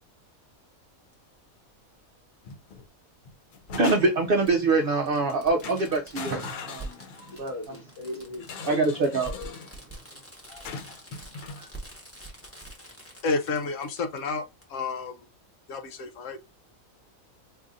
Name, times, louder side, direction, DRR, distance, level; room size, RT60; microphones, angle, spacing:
Fireworks, 1.1-1.2 2.8-2.9 4.5-4.6 5.1-5.2 5.4-14.3 14.6-14.7, right 2 dB, 10° left, 1.0 m, -44 dB
sound 1, 2.4-2.9 3.3-4.4 5.1-5.3 5.6-7.5 8.4-9.7 10.6-11.6, left 5 dB, 90° left, 0.4 m, -40 dB
voice 1, 3.7-7.7 8.6-9.3, right 3 dB, 55° right, 0.7 m, -25 dB
voice 2, 7.0-8.8 10.5-10.7 11.5-11.7, left 2 dB, 45° left, 1.5 m, -40 dB
voice 3, 13.2-14.4 14.7-15.1 15.7-16.4, left 4 dB, 70° left, 1.0 m, -30 dB
4.7 x 2.5 x 2.5 m
omnidirectional pair, 1.5 m